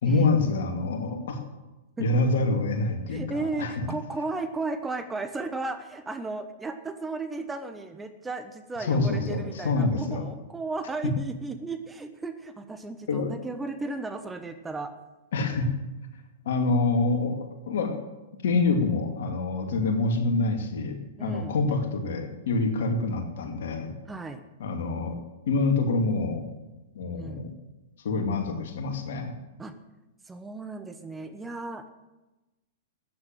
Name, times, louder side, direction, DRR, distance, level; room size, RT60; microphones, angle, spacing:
voice 1, 0.0-1.4 2.0-3.9 8.8-10.2 13.1-13.3 15.3-15.7 16.4-18.0 18.4-23.9 24.6-25.2 25.5-26.4 26.9-27.5 28.0-29.3, left 3 dB, 60° left, 4 dB, 2.5 m, -26 dB
voice 2, 3.1-14.9 21.2-21.5 24.1-24.4 27.1-27.5 29.6-29.7 30.2-31.8, right 3 dB, 10° right, 8 dB, 1.1 m, -35 dB
14.0 x 9.5 x 7.7 m, 1.1 s
figure-of-eight pair, 105°, 0 cm